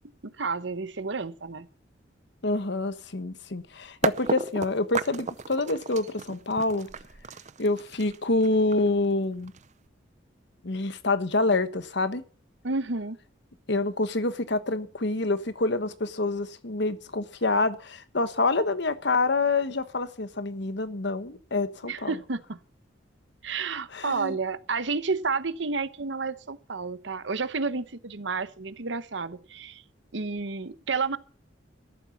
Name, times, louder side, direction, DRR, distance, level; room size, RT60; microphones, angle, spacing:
voice 1, 0.2-1.7 12.6-13.2 21.8-22.6 23.4-29.8 30.1-31.2, right 4 dB, 70° right, 1.0 m, -31 dB
voice 2, 2.4-6.9 7.6-9.5 10.6-12.2 13.7-22.1 23.9-24.4, left 2 dB, 60° left, 1.2 m, -27 dB
sound 1, 4.0-9.9, right 4 dB, 40° right, 0.6 m, -33 dB
13.5 x 11.5 x 7.2 m
head